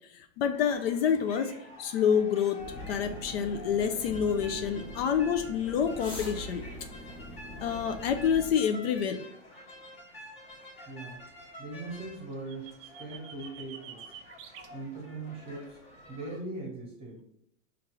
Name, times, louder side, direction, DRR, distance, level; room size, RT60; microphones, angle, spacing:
voice 1, 0.1-1.5 1.8-6.6 7.6-9.2, left 7 dB, 55° left, 6 dB, 0.4 m, -28 dB
sound 1, 0.5-16.4, left 1 dB, 15° left, 0.9 m, -49 dB
sound 2, 2.6-8.5, left 1 dB, 35° left, 1.2 m, -43 dB
voice 2, 10.9-11.2 11.6-14.0 14.7-15.8 16.1-17.2, right 2 dB, 15° right, -1 dB, 1.1 m, -40 dB
sound 3, 12.3-14.7, right 8 dB, 50° right, 0.4 m, -47 dB
4.6 x 2.5 x 3.0 m, 0.73 s
supercardioid pair, 145°, 37 cm